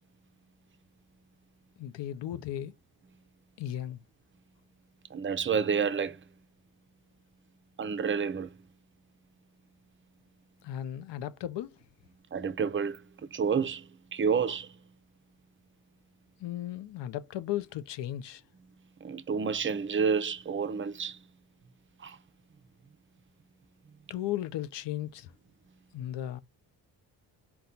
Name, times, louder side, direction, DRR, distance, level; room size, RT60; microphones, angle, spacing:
voice 1, 1.8-2.7 3.6-4.0 10.6-11.7 16.4-18.4 24.1-25.3 25.9-26.4, left 12 dB, 65° left, 0.6 m, -35 dB
voice 2, 5.1-6.2 7.8-8.5 12.3-13.0 13.3-14.7 19.0-21.2 22.0-22.2, right 6 dB, 25° right, 0.5 m, -29 dB
4.2 x 2.3 x 3.8 m
cardioid pair, 65°, 46 cm